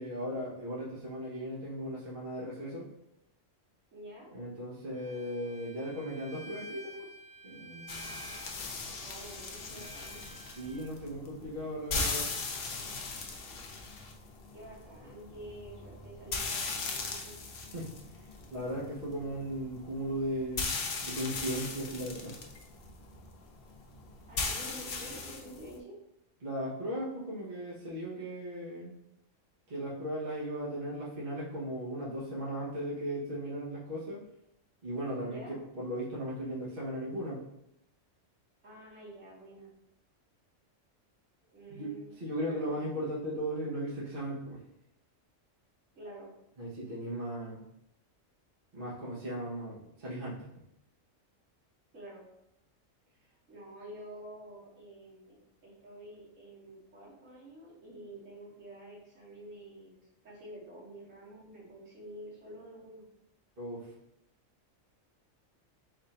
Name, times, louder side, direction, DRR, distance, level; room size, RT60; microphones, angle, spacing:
voice 1, 0.0-2.8 4.3-7.1 7.4-8.1 9.7-9.9 10.6-12.3 17.7-17.9 18.2-22.4 26.4-28.9 29.7-34.2 34.8-37.4 41.7-44.6 46.6-47.6 48.7-50.6 63.6-63.9, equal, 45° right, -7 dB, 1.3 m, -37 dB
voice 2, 3.9-4.3 9.0-10.3 14.5-17.4 24.3-25.9 35.2-35.6 38.6-39.7 41.5-42.1 42.4-42.8 46.0-46.3 51.9-52.2 53.5-59.9 60.2-63.0, right 1 dB, 80° right, -8 dB, 2.2 m, -49 dB
Bowed string instrument, 4.9-10.9, right 2 dB, 30° right, 0.5 m, -51 dB
sound 1, 7.9-25.8, left 3 dB, 55° left, 0.8 m, -39 dB
4.1 x 2.6 x 4.2 m, 0.80 s
omnidirectional pair, 1.3 m